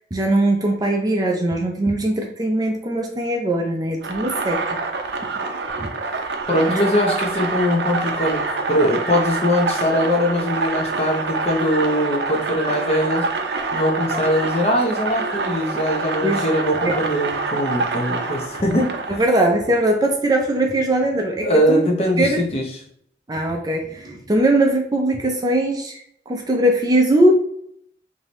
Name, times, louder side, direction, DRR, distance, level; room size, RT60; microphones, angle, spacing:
voice 1, 0.1-4.6 5.8-5.9 6.7-6.8 16.2-16.5 16.8-17.0 19.1-21.9 22.2-22.4 23.3-27.3, right 1 dB, 20° right, 2 dB, 0.5 m, -20 dB
sound 1, 4.0-19.2, right 3 dB, 75° right, 0.6 m, -26 dB
voice 2, 6.5-8.4 8.7-13.2 13.7-18.9 21.4-22.7, equal, 35° left, 1 dB, 0.8 m, -21 dB
4.9 x 2.7 x 3.0 m, 0.68 s
head